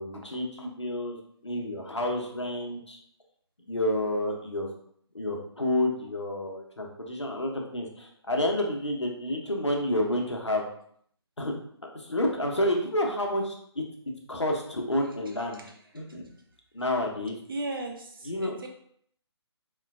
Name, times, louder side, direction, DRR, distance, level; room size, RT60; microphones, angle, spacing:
voice 1, 0.0-3.0 3.7-4.7 5.1-10.7 11.4-11.5 11.9-13.8 14.3-15.7 15.9-16.3 16.7-17.4 18.3-18.7, left 1 dB, 85° left, 0 dB, 0.7 m, -29 dB
voice 2, 15.3-16.0 17.5-18.7, right 2 dB, 50° right, 2 dB, 0.5 m, -37 dB
3.0 x 2.2 x 2.3 m, 0.65 s
figure-of-eight pair, 145°, 15 cm